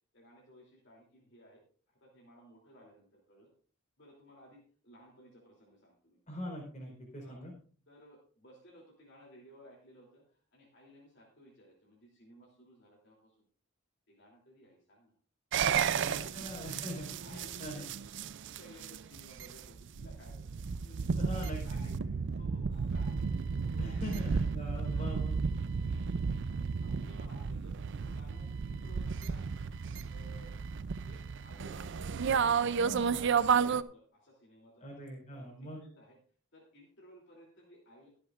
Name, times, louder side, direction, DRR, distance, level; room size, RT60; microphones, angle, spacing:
voice 1, 0.1-1.6 1.9-3.5 4.0-6.2 6.9-7.0 7.2-7.4 7.9-13.3 14.1-15.1 15.8-16.5 17.2-17.9 18.6-20.5 20.8-22.0 22.3-23.2 23.6-24.3 24.8-25.1 25.7-26.0 26.8-27.7 28.0-29.4 30.1-30.6 31.0-32.0 32.4-35.0 35.3-36.2 36.5-38.1, equal, 55° left, -4 dB, 3.1 m, -58 dB
voice 2, 6.3-7.5 16.0-17.9 21.2-21.9 23.8-25.3 32.8-33.1 34.8-35.8, equal, 35° left, -1 dB, 4.2 m, -42 dB
sound 1, 15.5-33.8, right 6 dB, 55° right, 0.4 m, -33 dB
23.0 x 7.8 x 2.5 m, 0.43 s
head